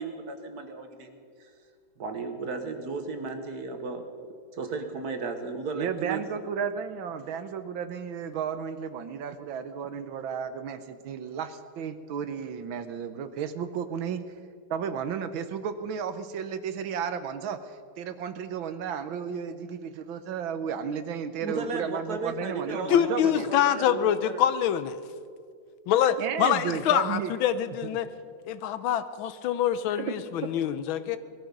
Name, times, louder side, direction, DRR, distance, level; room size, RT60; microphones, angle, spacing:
voice 1, 0.0-1.5 2.0-4.3 4.5-6.2 21.4-24.4, right 4 dB, 50° right, 6 dB, 1.6 m, -35 dB
voice 2, 5.7-14.2 14.7-23.5 26.2-27.3 30.0-30.1, right 7 dB, 75° right, 10 dB, 1.6 m, -33 dB
voice 3, 22.9-25.0 25.9-28.1 28.5-31.2, left 10 dB, 80° left, 13 dB, 1.5 m, -25 dB
19.5 x 13.5 x 5.3 m, 2.2 s
omnidirectional pair, 2.2 m